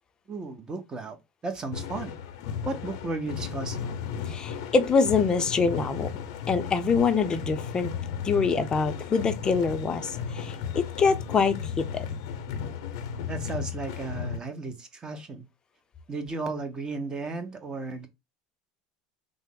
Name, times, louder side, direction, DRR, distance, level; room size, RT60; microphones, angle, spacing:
voice 1, 0.3-2.1 2.6-3.9 13.3-15.4 16.1-18.1, right 3 dB, 25° right, 0.8 m, -34 dB
sound 1, 1.7-14.4, left 7 dB, 70° left, 0.6 m, -35 dB
voice 2, 4.3-6.1 6.5-7.9 8.2-12.1, left 5 dB, 25° left, 0.5 m, -25 dB
3.2 x 2.0 x 3.7 m
supercardioid pair, 100°, 3 cm